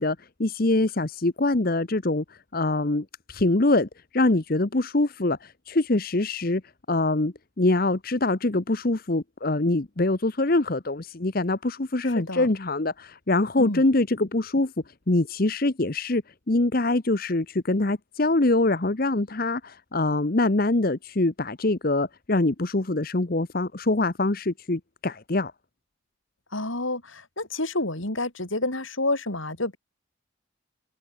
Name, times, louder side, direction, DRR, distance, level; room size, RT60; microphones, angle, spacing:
voice 1, 0.0-6.6 6.9-25.5, left 2 dB, 45° left, 1.0 m, -24 dB
voice 2, 12.2-12.5 13.6-13.8 26.5-29.8, left 2 dB, 75° left, 5.6 m, -29 dB
head